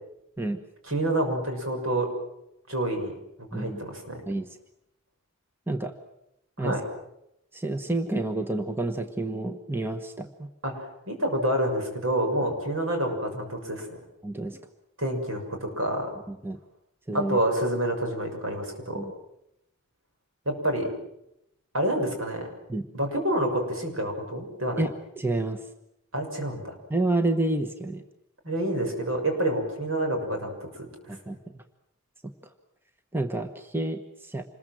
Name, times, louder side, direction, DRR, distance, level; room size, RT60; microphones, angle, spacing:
voice 1, 0.8-2.1 2.7-3.1 3.5-4.2 6.6-6.8 10.6-14.0 15.0-16.1 17.1-19.1 20.4-20.9 21.7-22.5 22.9-24.8 26.1-26.8 28.4-31.2, right 1 dB, 70° right, 3 dB, 6.8 m, -28 dB
voice 2, 7.5-10.5 14.2-14.6 16.3-16.6 17.1-17.4 18.9-19.1 22.7-22.9 24.8-25.6 26.9-28.0 31.1-31.6 33.1-34.4, right 2 dB, 10° right, 7 dB, 1.2 m, -29 dB
27.0 x 21.5 x 7.7 m, 0.82 s
head